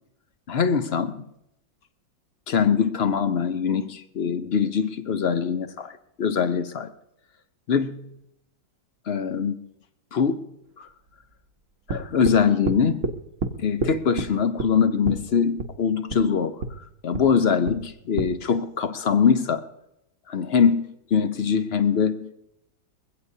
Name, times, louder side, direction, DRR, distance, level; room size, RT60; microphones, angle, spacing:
voice 1, 0.5-1.2 2.5-6.9 7.7-8.1 9.1-9.6 10.1-10.4 10.8-10.9 11.9-13.1 13.6-16.6 17.0-19.6 20.3-22.3, left 6 dB, 60° left, 10 dB, 0.6 m, -23 dB
sound 1, 11.9-12.4 12.7-13.2 13.4-13.5 13.8-14.3 14.6-14.7 15.1-15.2 15.6-15.7 16.1-16.2 16.6-16.7 17.1-17.3 17.7-17.8 18.2-18.3, right 4 dB, 50° right, 1.1 m, -27 dB
22.0 x 16.0 x 2.7 m, 0.81 s
omnidirectional pair, 2.0 m